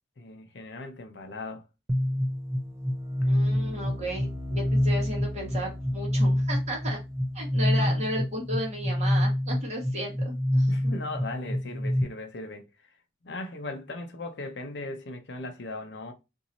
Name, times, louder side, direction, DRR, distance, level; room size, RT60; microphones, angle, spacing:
voice 1, 0.2-1.7 3.2-3.3 7.7-8.2 10.7-13.0 13.2-16.1, left 2 dB, 60° left, 0.7 m, -38 dB
sound 1, 1.9-12.0, left 1 dB, 15° right, 0.4 m, -27 dB
voice 2, 3.3-7.0 7.3-11.0, equal, 35° right, 1.4 m, -34 dB
3.0 x 2.7 x 4.0 m
head